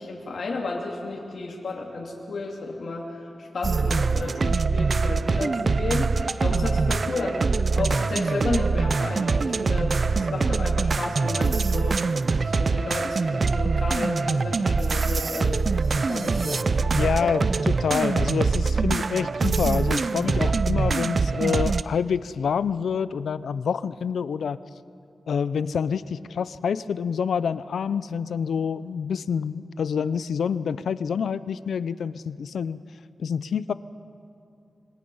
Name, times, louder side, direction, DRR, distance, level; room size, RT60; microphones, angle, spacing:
voice 1, 0.0-7.4 7.7-12.0 12.3-15.7 15.9-17.3, left 3 dB, 65° left, -2 dB, 2.7 m, -32 dB
sound 1, 3.6-21.8, right 4 dB, 50° right, 0.5 m, -24 dB
voice 2, 17.0-24.6 25.3-32.8 33.2-33.7, left 7 dB, 90° left, 16 dB, 0.5 m, -27 dB
26.5 x 22.5 x 5.6 m, 2.6 s
wide cardioid pair, 80°, 0 cm